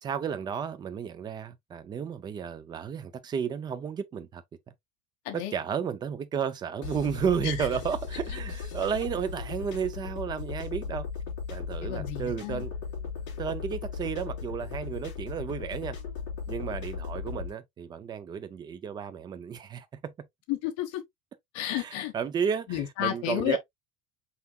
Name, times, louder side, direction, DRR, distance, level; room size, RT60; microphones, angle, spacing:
voice 1, 0.0-4.4 5.3-11.1 11.5-12.7 13.4-16.0 16.5-20.1 21.7-23.6, right 7 dB, 15° right, 0.3 m, -32 dB
sound 1, 6.8-17.5, left 6 dB, 35° left, 3.5 m, -37 dB
voice 2, 11.8-12.6 20.5-21.0 21.5-22.1 22.7-23.6, left 12 dB, 55° left, 1.3 m, -31 dB
5.7 x 4.0 x 2.3 m
cardioid pair, 175°, 32 cm